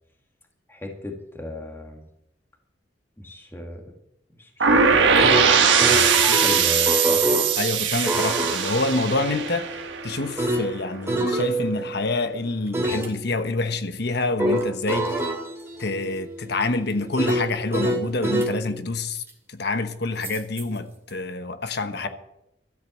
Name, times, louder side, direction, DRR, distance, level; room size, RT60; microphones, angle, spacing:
voice 1, 0.7-2.0 3.2-3.8 4.4-7.4, left 1 dB, 15° left, 2.0 m, -34 dB
sound 1, 4.6-10.5, right 6 dB, 85° right, 1.5 m, -20 dB
sound 2, 4.9-7.5 8.1-12.2 12.7-13.1 14.4-18.6 20.2-20.6, right 1 dB, 15° right, 2.2 m, -26 dB
voice 2, 7.6-9.7 10.0-15.3 15.8-19.2 19.5-22.1, left 2 dB, 60° left, 1.1 m, -27 dB
13.5 x 8.2 x 7.3 m
head